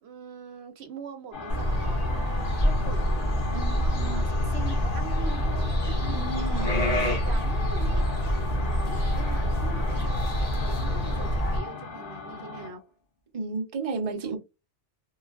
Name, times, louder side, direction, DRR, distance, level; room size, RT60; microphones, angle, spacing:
voice 1, 0.0-3.2 3.7-12.8 14.2-14.4, right 6 dB, 70° right, 0.8 m, -43 dB
sound 1, 1.3-12.8, left 4 dB, 60° left, 1.2 m, -38 dB
sound 2, 1.5-11.6, equal, 40° left, 0.9 m, -26 dB
voice 2, 3.5-4.2 6.1-7.2 13.3-14.4, right 3 dB, 40° right, 0.6 m, -33 dB
3.1 x 2.3 x 2.3 m
omnidirectional pair, 1.2 m